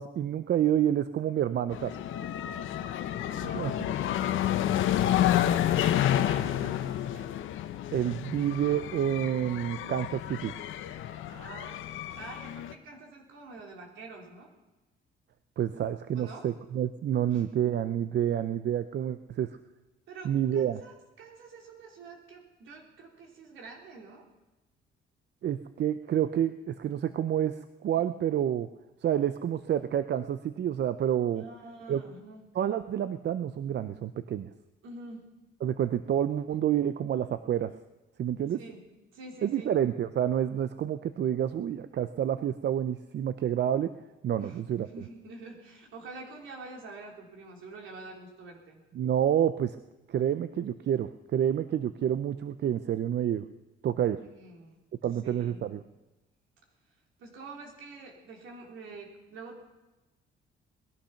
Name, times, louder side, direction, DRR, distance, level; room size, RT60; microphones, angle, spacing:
voice 1, 0.0-2.0 3.5-3.9 7.9-10.5 15.6-19.5 20.2-20.8 25.4-28.7 29.0-31.4 31.9-32.0 32.6-34.5 35.6-37.7 38.2-38.6 39.4-43.9 44.2-44.9 48.9-49.8 50.1-53.4 53.8-54.2 55.0-55.8, right 10 dB, 60° right, 12 dB, 0.7 m, -28 dB
sound 1, 1.7-12.7, left 11 dB, 80° left, 0.9 m, -30 dB
voice 2, 2.1-7.3 11.3-14.5 16.1-16.5 17.3-17.5 20.1-24.3 31.3-32.5 34.8-35.3 38.5-38.8 39.1-39.7 44.4-44.6 44.9-48.8 54.2-54.7 55.2-55.7 57.2-59.6, right 3 dB, 80° right, 1 dB, 3.6 m, -47 dB
20.0 x 12.0 x 5.8 m, 1.1 s
cardioid pair, 90°, 20 cm